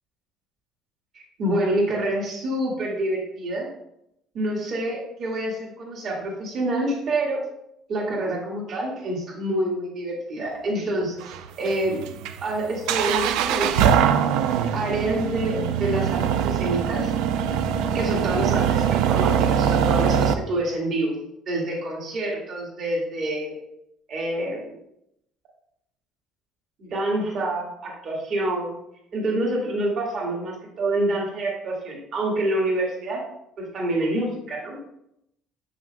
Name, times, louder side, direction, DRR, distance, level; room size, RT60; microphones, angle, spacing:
voice 1, 1.1-3.7 4.3-7.4 7.9-11.3 11.6-12.0 12.4-14.0 14.7-17.1 17.9-21.2 21.5-23.5 24.1-24.7 26.8-28.7 29.1-33.2 33.6-34.8, right 1 dB, 40° right, -2 dB, 1.9 m, -27 dB
sound 1, 11.2-20.3, right 8 dB, 80° right, 0.4 m, -22 dB
7.3 x 5.9 x 2.2 m, 0.78 s
cardioid pair, 155°, 0 cm